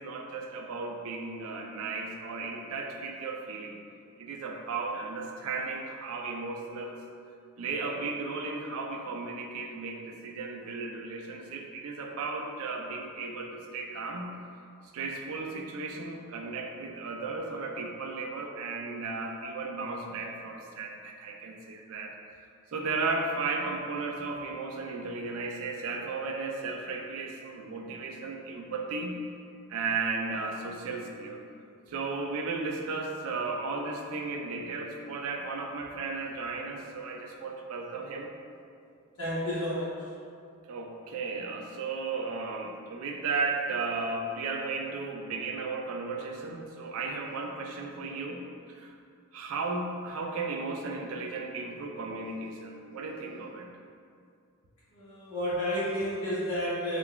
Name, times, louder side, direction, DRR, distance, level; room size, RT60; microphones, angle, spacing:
voice 1, 0.0-3.8 4.2-7.0 7.6-14.3 14.9-22.1 22.7-29.2 29.7-31.4 31.9-38.3 40.7-48.4 48.7-48.9 49.3-53.7, right 3 dB, 65° right, 2 dB, 0.3 m, -35 dB
voice 2, 39.2-40.1 54.9-57.0, equal, 65° left, -11 dB, 0.8 m, -31 dB
3.7 x 2.2 x 2.2 m, 2.3 s
head